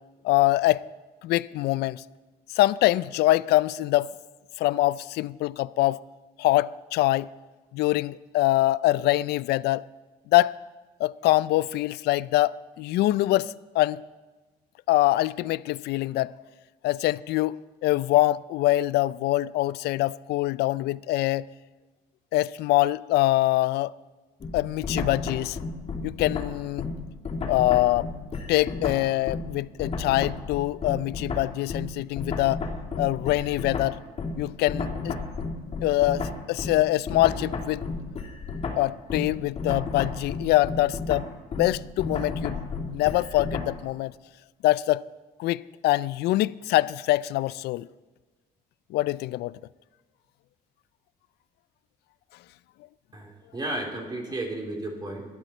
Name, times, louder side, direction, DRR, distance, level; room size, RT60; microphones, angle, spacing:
voice 1, 0.2-0.8 1.2-2.0 2.5-4.1 4.6-6.0 6.4-7.3 7.7-9.8 10.3-10.6 11.0-14.0 14.9-16.3 16.8-21.5 22.3-23.9 24.5-25.6 26.0-26.9 27.5-28.1 28.5-32.6 33.0-34.0 34.4-35.1 35.8-37.8 38.8-41.3 41.5-44.1 44.6-45.0 45.4-47.9 48.9-49.6, left 17 dB, 75° left, 0.4 m, -24 dB
sound 1, 24.4-29.5 29.8-43.8, left 3 dB, 35° left, 2.9 m, -32 dB
voice 2, 53.1-55.2, right 1 dB, 25° right, 3.3 m, -33 dB
17.5 x 12.0 x 4.4 m
cardioid pair, 110°, 17 cm